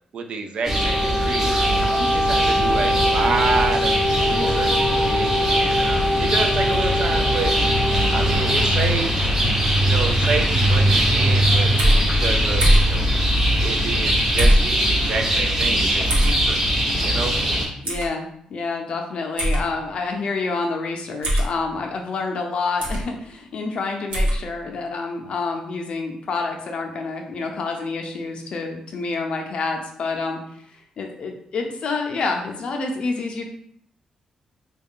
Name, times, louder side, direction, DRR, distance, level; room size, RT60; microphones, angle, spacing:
voice 1, 0.1-1.6 2.0-7.6 8.1-9.3 9.8-11.7 12.0-13.1 13.6-16.6 17.0-17.4, right 4 dB, 60° right, 4 dB, 0.4 m, -28 dB
Wind instrument woodwind instrument, 0.6-8.6, left 1 dB, ahead, 0.4 m, -23 dB
sound 1, 0.6-17.7, equal, 25° right, 0.9 m, -21 dB
sound 2, 11.8-12.0 12.6-12.9 14.4-14.7 16.1-16.3 17.8-18.1 19.4-19.6 21.2-21.5 22.8-23.0 24.1-24.4, equal, 85° right, 1.0 m, -18 dB
voice 2, 17.8-30.6 31.0-33.5, left 4 dB, 55° left, 3 dB, 0.6 m, -28 dB
3.6 x 2.3 x 3.6 m, 0.67 s
wide cardioid pair, 145°, 2 cm